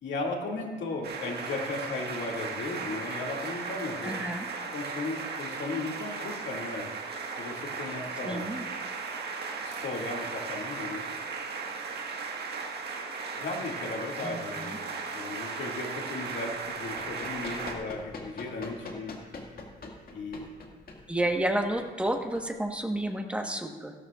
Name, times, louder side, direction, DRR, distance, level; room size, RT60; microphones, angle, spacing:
voice 1, 0.0-4.1 4.7-6.9 7.4-8.5 9.6-11.0 13.4-14.9 15.1-19.2 20.1-20.5, left 3 dB, 65° left, 0 dB, 2.4 m, -36 dB
sound 1, 1.0-17.7, right 4 dB, 55° right, 1.7 m, -36 dB
voice 2, 4.0-4.5 8.2-8.7 14.2-14.8 21.1-23.9, right 1 dB, 5° right, 3 dB, 1.3 m, -31 dB
Run, 16.7-23.0, left 2 dB, 50° left, 2.1 m, -44 dB
16.5 x 12.5 x 2.5 m, 1.4 s
cardioid pair, 90°, 20 cm